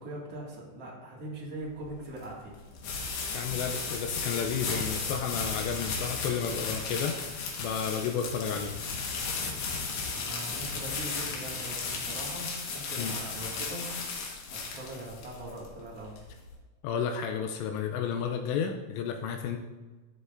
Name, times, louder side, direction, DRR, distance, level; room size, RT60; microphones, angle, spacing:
voice 1, 0.0-2.6 10.1-13.9 14.7-16.2, right 1 dB, 45° right, -5 dB, 2.2 m, -41 dB
sound 1, 1.6-16.5, left 4 dB, 65° left, 3.0 m, -35 dB
voice 2, 3.3-7.2 7.6-8.7 13.0-13.1 16.8-19.6, left 7 dB, 80° left, 4 dB, 2.6 m, -32 dB
12.0 x 8.1 x 2.6 m, 1.3 s
omnidirectional pair, 5.6 m